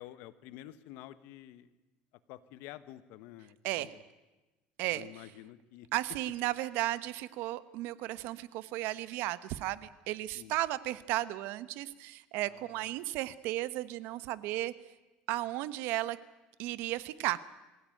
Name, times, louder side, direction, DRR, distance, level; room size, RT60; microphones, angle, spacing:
voice 1, 0.0-1.7 2.3-4.0 4.9-5.9 10.3-10.6 12.5-12.7, left 14 dB, 75° left, 14 dB, 1.3 m, -49 dB
voice 2, 5.9-14.9 15.3-16.2 16.6-17.4, right 16 dB, 75° right, 15 dB, 1.1 m, -34 dB
24.0 x 16.0 x 9.2 m, 1.1 s
cardioid pair, 130°, 4 cm